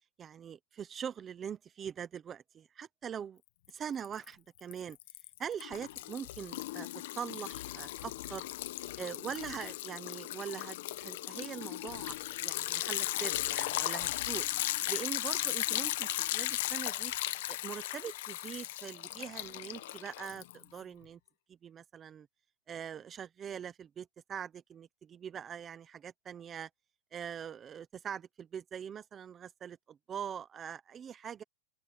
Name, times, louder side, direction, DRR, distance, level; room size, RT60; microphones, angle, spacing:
voice 1, 0.2-3.4 3.7-5.0 5.4-8.5 9.0-14.5 14.9-17.1 17.5-21.2 21.5-22.3 22.7-26.7 27.1-31.4, right 8 dB, 15° right, 1.0 m, -43 dB
Liquid, 3.7-4.3 4.6-20.8, left 16 dB, 60° left, 1.1 m, -36 dB
open air
supercardioid pair, 165°, 0 cm